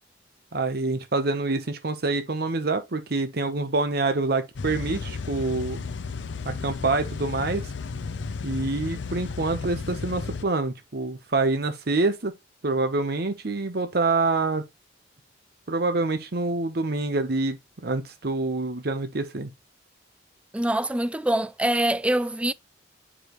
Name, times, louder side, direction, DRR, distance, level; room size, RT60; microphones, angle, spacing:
voice 1, 0.5-5.8 6.4-7.6 8.4-12.3 12.6-14.6 15.7-19.5, right 3 dB, 55° right, 0.9 m, -26 dB
sound 1, 4.6-10.5, left 4 dB, 75° left, 0.6 m, -33 dB
voice 2, 20.5-22.5, right 1 dB, 5° right, 0.3 m, -24 dB
8.6 x 5.0 x 3.0 m
head